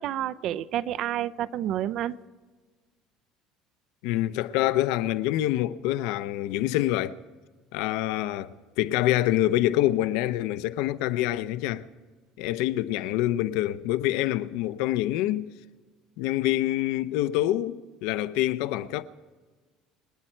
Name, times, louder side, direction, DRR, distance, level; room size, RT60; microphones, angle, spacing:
voice 1, 0.0-2.2, right 12 dB, 50° right, 0.5 m, -29 dB
voice 2, 4.0-7.1 7.7-11.9 12.4-15.5 16.2-19.0, left 14 dB, 80° left, 0.7 m, -26 dB
27.0 x 9.9 x 4.5 m
cardioid pair, 155°, 0 cm